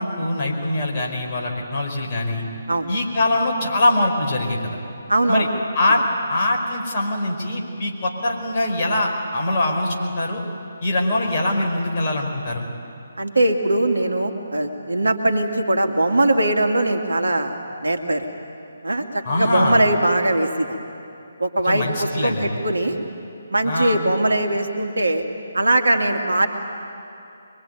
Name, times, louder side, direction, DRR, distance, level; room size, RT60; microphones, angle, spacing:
voice 1, 0.0-2.4 2.9-4.8 5.3-5.5 5.7-6.0 6.3-10.4 10.8-12.7 19.2-19.8 21.6-22.6 23.6-24.0, left 1 dB, 35° left, 0 dB, 5.0 m, -23 dB
voice 2, 5.1-5.5 13.2-18.3 18.8-20.7 21.4-23.0 23.5-25.2 25.5-26.5, right 1 dB, 75° right, 4 dB, 2.4 m, -21 dB
24.0 x 23.0 x 9.4 m, 2.7 s
figure-of-eight pair, 145°, 0 cm